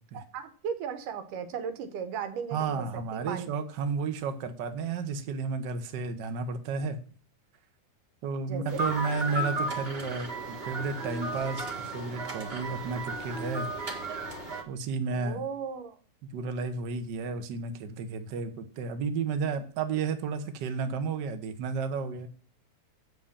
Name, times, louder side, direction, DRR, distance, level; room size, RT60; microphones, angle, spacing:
voice 1, 0.1-3.5 8.5-8.9 15.1-16.0, right 7 dB, 90° right, 10 dB, 2.6 m, -36 dB
voice 2, 2.5-7.0 8.2-13.7 14.7-15.4 16.3-22.3, right 5 dB, 75° right, 7 dB, 1.0 m, -32 dB
sound 1, 8.7-14.6, right 2 dB, 50° right, 0.7 m, -34 dB
7.9 x 6.2 x 7.2 m, 0.44 s
omnidirectional pair, 3.6 m